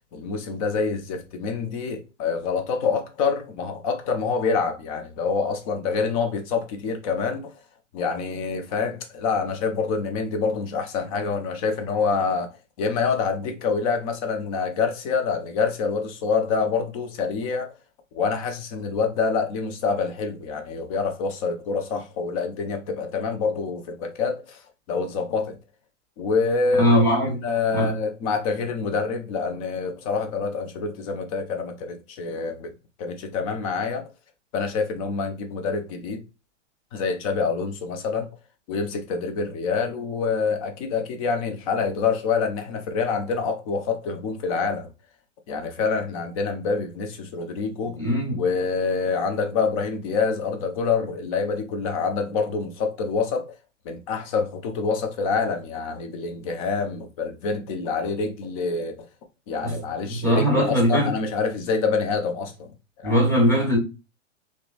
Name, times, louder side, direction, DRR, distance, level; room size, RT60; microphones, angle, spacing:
voice 1, 0.1-7.5 7.9-12.5 12.8-17.7 18.1-24.6 24.9-25.6 26.2-32.7 33.0-34.1 34.5-36.2 36.9-38.3 38.7-44.9 45.5-48.0 48.4-53.5 53.9-59.1 59.5-62.7 63.0-63.2, left 5 dB, 30° left, 0.4 m, -26 dB
voice 2, 26.8-27.4 27.7-27.9 47.9-48.4 59.6-59.7 60.1-61.1 63.0-63.8, equal, 5° left, 1.0 m, -20 dB
2.9 x 2.1 x 2.3 m
hypercardioid pair, 120°, 39 cm